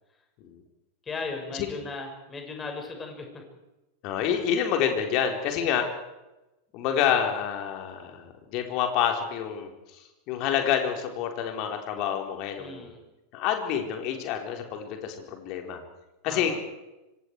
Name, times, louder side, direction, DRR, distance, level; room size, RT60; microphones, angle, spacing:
voice 1, 1.1-3.4 12.6-13.0 16.3-16.6, left 3 dB, 20° left, 3 dB, 6.2 m, -37 dB
voice 2, 4.0-5.9 6.7-9.7 10.3-12.9 13.3-15.8 16.2-16.5, left 8 dB, 40° left, 3 dB, 4.3 m, -28 dB
26.0 x 25.5 x 4.8 m, 1.0 s
figure-of-eight pair, 90°, 0 cm